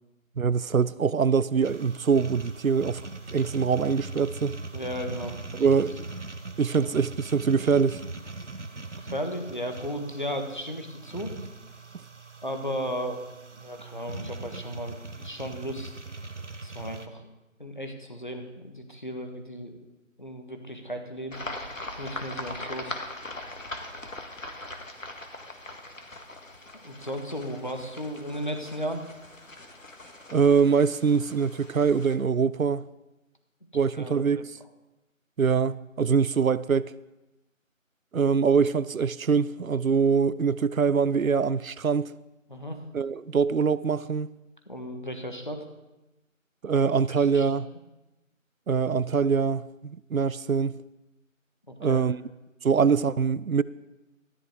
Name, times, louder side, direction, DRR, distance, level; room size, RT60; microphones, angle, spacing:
voice 1, 0.4-3.0 3.3-4.6 5.6-6.0 6.6-8.0 30.3-32.8 33.7-34.5 35.4-36.9 38.1-42.1 42.9-44.3 46.6-47.7 48.7-50.7 51.8-52.2 52.6-53.6, right 6 dB, 90° right, 0.6 m, -23 dB
sound 1, 1.6-17.1, right 3 dB, 60° right, 1.1 m, -41 dB
voice 2, 4.7-5.7 6.8-6.9 9.0-11.3 12.4-13.2 13.5-16.0 16.6-17.3 17.6-19.8 20.2-21.4 22.0-23.0 26.8-29.0 33.9-34.4 42.5-42.8 44.7-45.7 47.2-47.5 51.7-52.0, equal, 35° left, 1.5 m, -35 dB
sound 2, 21.3-32.1, left 2 dB, 70° left, 1.9 m, -41 dB
14.0 x 10.0 x 4.8 m
figure-of-eight pair, 175°, 40 cm